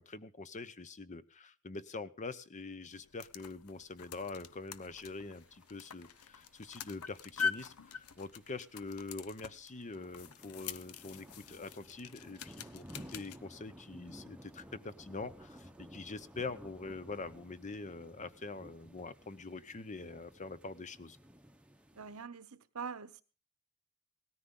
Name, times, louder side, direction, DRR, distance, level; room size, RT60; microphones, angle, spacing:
voice 1, 0.0-21.2, left 3 dB, 35° left, 0.8 m, -44 dB
sound 1, 2.9-13.4, left 6 dB, 90° left, 0.7 m, -44 dB
sound 2, 5.1-22.2, equal, 5° right, 0.9 m, -56 dB
voice 2, 22.0-23.2, right 5 dB, 80° right, 0.9 m, -44 dB
18.0 x 13.5 x 3.8 m
head